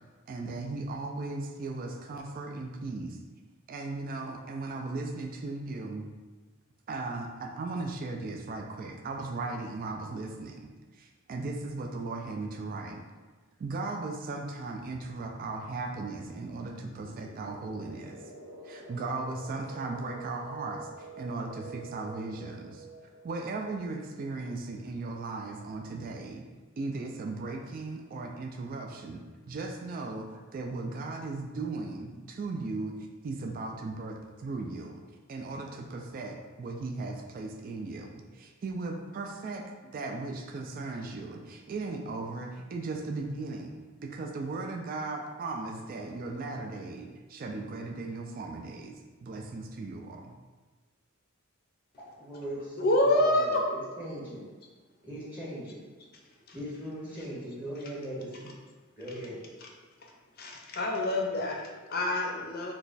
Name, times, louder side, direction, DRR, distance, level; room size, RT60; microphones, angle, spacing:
voice 1, 0.3-3.2 3.7-6.1 6.9-10.6 10.9-13.0 13.6-18.2 18.6-22.9 23.2-26.4 26.8-29.2 29.5-32.9 33.2-35.0 35.3-43.7 44.0-48.9 49.2-50.3, right 3 dB, 40° right, 2 dB, 0.3 m, -37 dB
sound 1, 14.8-25.3, right 3 dB, 90° right, 1.1 m, -48 dB
voice 2, 52.2-54.4 55.0-55.8 56.5-58.5 59.0-59.4, equal, 10° right, -7 dB, 0.9 m, -39 dB
voice 3, 52.8-53.6 56.5-56.6 57.2-57.3 59.6-59.7 60.0-60.1 60.4-62.7, left 1 dB, 45° left, 0 dB, 0.5 m, -27 dB
3.0 x 2.2 x 3.9 m, 1.3 s
head